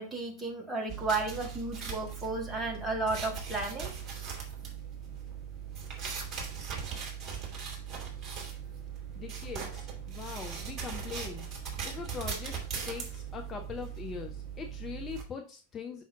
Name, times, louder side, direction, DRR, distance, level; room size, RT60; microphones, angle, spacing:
voice 1, 0.0-3.9, right 3 dB, 10° right, -1 dB, 1.7 m, -33 dB
sound 1, 0.9-15.2, right 7 dB, 25° right, 2.7 m, -39 dB
voice 2, 9.1-11.5 11.8-12.6 12.9-16.0, left 6 dB, 25° left, 3 dB, 0.8 m, -41 dB
5.8 x 5.8 x 3.6 m, 0.38 s
figure-of-eight pair, 90°, 0 cm